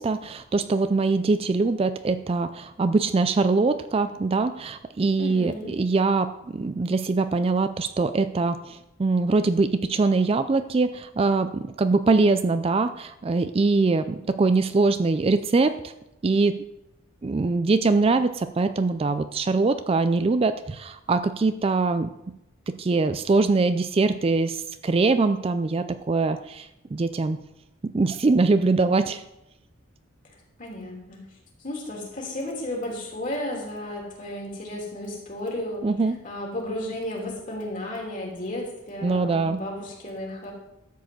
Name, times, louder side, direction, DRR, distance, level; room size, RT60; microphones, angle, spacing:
voice 1, 0.0-15.9 16.2-16.6 17.2-22.1 22.7-27.4 27.8-29.2 35.8-36.2 39.0-39.6, right 3 dB, 30° right, 11 dB, 0.3 m, -23 dB
voice 2, 5.2-5.7 30.6-31.2 31.6-35.8 36.2-40.5, left 1 dB, 40° left, -2 dB, 3.1 m, -33 dB
13.0 x 4.7 x 7.7 m, 0.89 s
head